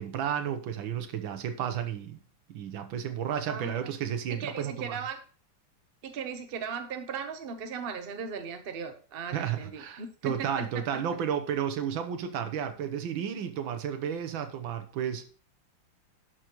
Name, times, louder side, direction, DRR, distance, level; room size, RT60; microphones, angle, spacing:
voice 1, 0.0-2.2 2.5-5.0 9.3-15.2, right 8 dB, 70° right, 1.6 m, -32 dB
voice 2, 3.5-3.9 4.3-5.2 6.0-11.0, right 6 dB, 45° right, 0.7 m, -37 dB
10.5 x 6.4 x 3.0 m
omnidirectional pair, 2.3 m